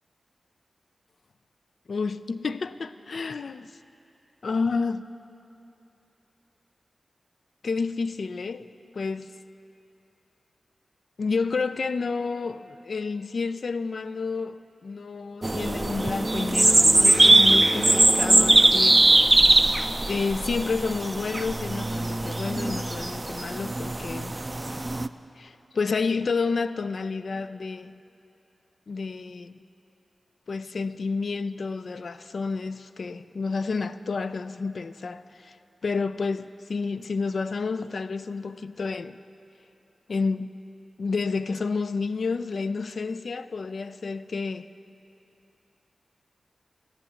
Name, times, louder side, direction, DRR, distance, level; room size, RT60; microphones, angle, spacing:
voice 1, 1.9-3.7 4.4-5.1 7.6-8.7 8.9-9.3 11.2-19.3 20.1-24.4 25.4-28.0 28.9-29.6 30.5-35.6 35.8-39.2 40.1-40.5 41.0-44.7, left 4 dB, 75° left, 0.3 m, -30 dB
sound 1, 15.4-25.1, right 2 dB, 30° right, 0.4 m, -21 dB
13.0 x 8.7 x 6.3 m
cardioid pair, 40°, 0 cm